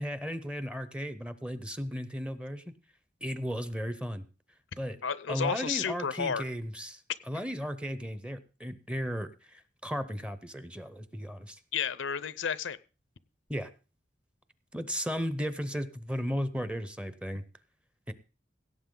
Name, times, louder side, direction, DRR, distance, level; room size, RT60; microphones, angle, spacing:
voice 1, 0.0-2.7 3.2-4.2 4.8-5.0 5.3-7.0 7.3-11.6 13.5-13.7 14.7-17.4 18.1-18.2, equal, 5° right, 13 dB, 0.7 m, -35 dB
voice 2, 5.0-6.4 11.7-12.8, left 6 dB, 80° left, 17 dB, 0.6 m, -31 dB
17.0 x 7.8 x 3.8 m, 0.35 s
head